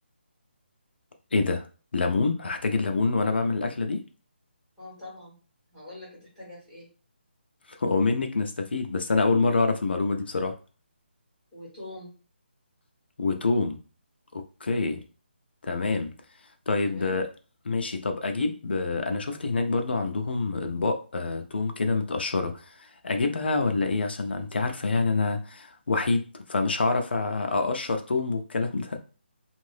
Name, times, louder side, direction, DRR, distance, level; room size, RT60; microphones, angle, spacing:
voice 1, 1.3-1.7 1.9-4.0 7.7-10.5 13.2-13.8 14.3-15.0 15.6-16.1 16.7-17.3 17.7-26.2 26.5-29.0, left 3 dB, 65° left, 5 dB, 0.6 m, -26 dB
voice 2, 4.8-5.4 5.7-6.9 11.5-12.1 14.7-15.0 16.8-17.2, left 2 dB, 5° left, -11 dB, 1.7 m, -44 dB
2.7 x 2.5 x 3.3 m, 0.36 s
hypercardioid pair, 175°, 6 cm